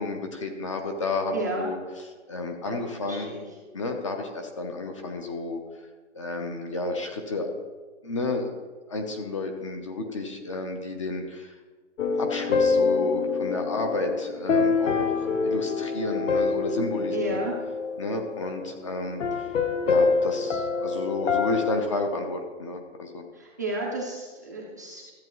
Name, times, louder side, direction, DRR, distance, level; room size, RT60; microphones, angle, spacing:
voice 1, 0.0-1.8 2.3-3.3 3.7-5.6 6.1-7.5 8.0-8.5 8.9-11.5 12.2-17.4 18.0-19.5 19.9-23.2, left 3 dB, 25° left, 4 dB, 0.7 m, -31 dB
voice 2, 1.3-1.7 2.6-2.8 3.0-3.4 17.1-17.5 23.3-25.1, right 2 dB, 15° right, -4 dB, 0.5 m, -32 dB
sound 1, 12.0-18.6 19.2-21.8, left 4 dB, 90° left, 1.1 m, -26 dB
13.5 x 7.9 x 3.1 m, 1.4 s
hypercardioid pair, 165°, 36 cm